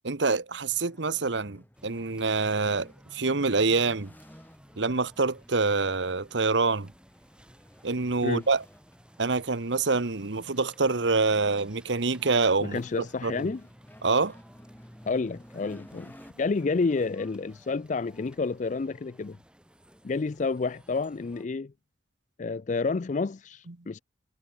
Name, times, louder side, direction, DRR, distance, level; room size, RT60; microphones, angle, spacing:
voice 1, 0.0-4.1 4.8-6.9 7.8-8.6 9.2-12.8 13.2-13.5 14.0-14.3 23.7-23.8, right 3 dB, 75° right, 1.2 m, -26 dB
sound 1, 0.7-16.3, equal, 10° left, 5.5 m, -54 dB
sound 2, 1.7-21.5, equal, 5° right, 6.1 m, -57 dB
voice 2, 12.6-13.6 15.1-19.4 20.0-21.7 22.4-24.0, left 4 dB, 40° left, 0.4 m, -30 dB
head